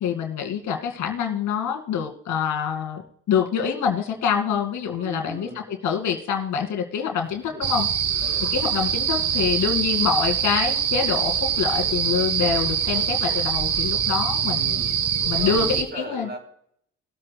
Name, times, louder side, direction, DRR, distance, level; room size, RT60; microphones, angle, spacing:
voice 1, 0.0-3.0 3.3-7.9 8.5-14.8 15.3-16.3, left 7 dB, 75° left, 3 dB, 2.3 m, -26 dB
voice 2, 4.9-5.7 7.2-7.7 8.2-8.5 14.4-15.0 15.3-16.4, right 1 dB, 35° right, 1 dB, 4.1 m, -38 dB
sound 1, 7.6-15.8, right 8 dB, 55° right, 1.6 m, -24 dB
20.5 x 8.4 x 2.3 m, 0.67 s
cardioid pair, 90°, 30 cm